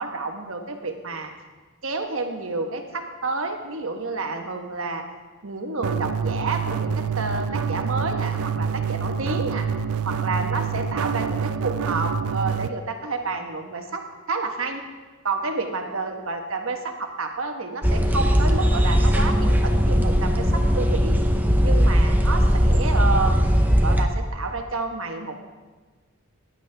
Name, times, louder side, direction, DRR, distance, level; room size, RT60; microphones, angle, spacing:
voice 1, 0.0-1.3 1.8-5.0 5.4-9.7 10.0-14.0 14.3-14.8 15.2-21.2 21.6-23.4 23.8-25.4, right 3 dB, 65° right, 4 dB, 1.2 m, -29 dB
sound 1, 5.8-12.7, right 6 dB, 85° right, 0.4 m, -26 dB
sound 2, 17.8-24.1, equal, 10° right, 0.7 m, -19 dB
15.0 x 10.5 x 3.4 m, 1.3 s
head